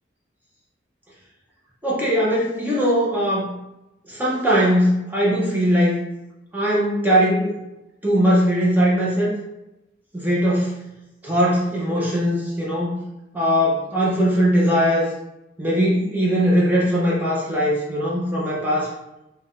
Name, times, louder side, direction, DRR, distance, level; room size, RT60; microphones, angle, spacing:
voice 1, 1.8-3.5 4.1-6.0 6.5-7.6 8.0-9.4 10.1-10.7 11.2-13.0 13.3-15.1 15.6-18.9, equal, 10° right, -5 dB, 0.5 m, -20 dB
2.4 x 2.1 x 3.4 m, 0.94 s
head